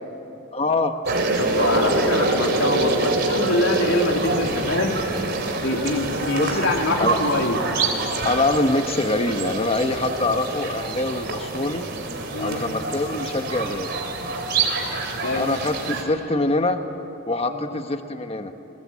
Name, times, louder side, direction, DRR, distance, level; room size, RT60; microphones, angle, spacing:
voice 1, 0.5-1.0 6.4-6.6 7.0-7.2 8.2-11.9 12.4-13.9 15.4-16.8 17.3-18.5, left 2 dB, 30° left, 7 dB, 1.1 m, -24 dB
sound 1, 1.0-16.0, right 2 dB, 50° right, 3.4 m, -25 dB
voice 2, 1.4-5.0 5.6-7.6 12.3-12.6 15.2-15.5 17.5-17.6, left 2 dB, 65° left, 2 dB, 3.0 m, -24 dB
29.0 x 21.0 x 8.6 m, 2.9 s
head